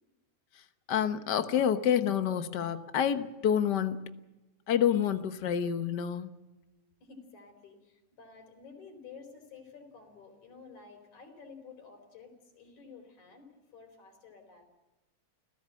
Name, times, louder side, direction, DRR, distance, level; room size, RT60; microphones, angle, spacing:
voice 1, 0.9-4.1 4.7-6.3, left 9 dB, 60° left, 10 dB, 1.1 m, -28 dB
voice 2, 7.0-14.7, left 5 dB, 75° left, 6 dB, 5.7 m, -52 dB
29.5 x 16.0 x 7.6 m, 1.0 s
omnidirectional pair, 3.4 m